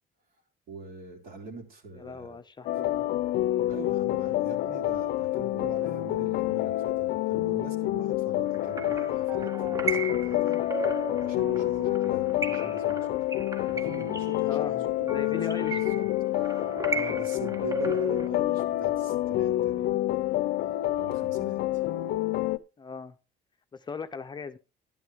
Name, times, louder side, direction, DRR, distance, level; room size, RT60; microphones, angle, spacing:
voice 1, 0.7-2.4 3.7-10.6 10.9-13.3 13.7-16.1 16.4-20.3 20.9-21.8, right 4 dB, 60° right, 1 dB, 3.8 m, -44 dB
voice 2, 2.0-3.0 14.4-14.9 15.1-15.9 16.9-17.0 18.2-18.3 22.8-23.1 23.7-24.6, left 5 dB, 25° left, 8 dB, 0.7 m, -38 dB
sound 1, 2.7-22.6, left 14 dB, 75° left, 0.6 m, -28 dB
sound 2, 8.5-18.3, right 3 dB, 20° right, 1.0 m, -36 dB
11.5 x 11.0 x 3.6 m, 0.30 s
cardioid pair, 110°, 17 cm